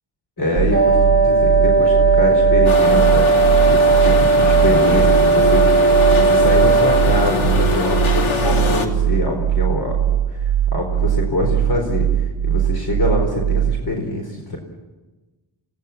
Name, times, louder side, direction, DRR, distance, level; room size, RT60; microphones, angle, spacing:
voice 1, 0.4-14.6, left 2 dB, 50° left, 1 dB, 4.5 m, -24 dB
sound 1, 0.6-13.9, right 10 dB, 90° right, 0.8 m, -20 dB
Wind instrument woodwind instrument, 0.7-7.5, right 3 dB, 30° left, 4.7 m, -16 dB
sound 2, 2.6-8.9, left 4 dB, 90° left, 2.8 m, -23 dB
28.0 x 17.5 x 7.3 m, 1.2 s
wide cardioid pair, 120°, 47 cm